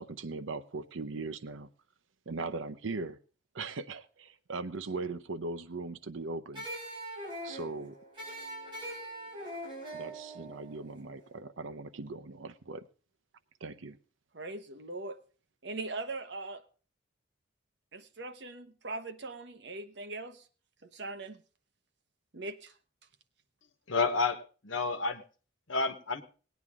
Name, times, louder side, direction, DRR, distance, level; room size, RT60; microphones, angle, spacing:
voice 1, 0.0-1.7 2.3-3.2 3.5-6.7 7.4-7.9 9.9-12.9 13.6-14.0, right 3 dB, 85° right, 0.7 m, -39 dB
sound 1, 6.5-11.6, right 1 dB, 25° right, 5.2 m, -42 dB
voice 2, 14.3-15.2 15.6-16.6 17.9-20.5 20.8-21.4 22.3-22.8, right 2 dB, 60° right, 1.0 m, -40 dB
voice 3, 23.9-25.2 25.7-26.2, left 4 dB, 85° left, 1.3 m, -30 dB
18.5 x 9.4 x 3.6 m
head